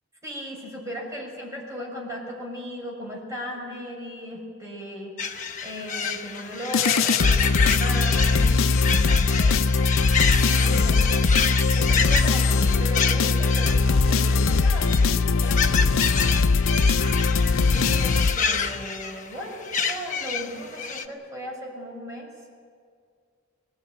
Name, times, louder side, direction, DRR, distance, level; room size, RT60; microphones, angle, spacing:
voice 1, 0.2-10.0 10.5-16.4 17.5-22.3, equal, 15° right, -3 dB, 6.6 m, -37 dB
sound 1, 5.2-21.0, left 6 dB, 40° left, 1.1 m, -29 dB
sound 2, 6.7-18.8, left 4 dB, 80° left, 0.6 m, -21 dB
23.0 x 18.5 x 9.3 m, 2.1 s
head